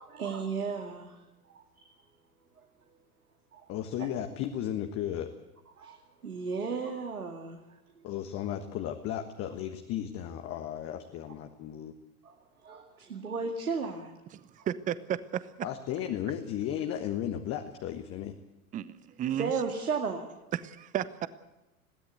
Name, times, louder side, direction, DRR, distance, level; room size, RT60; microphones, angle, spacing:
voice 1, 0.0-2.0 2.6-3.0 3.5-3.7 4.0-4.1 5.8-7.6 8.0-8.1 12.2-12.4 12.6-14.1 14.6-14.7 19.4-20.3, right 5 dB, 75° right, 3 dB, 2.3 m, -35 dB
voice 2, 3.7-5.3 8.0-11.9 15.6-18.3, left 10 dB, 30° left, 6 dB, 1.4 m, -34 dB
voice 3, 14.3-15.5 18.7-19.5 20.5-21.3, right 10 dB, 20° right, 16 dB, 0.8 m, -33 dB
21.5 x 17.0 x 8.1 m, 0.99 s
figure-of-eight pair, 90°, 44 cm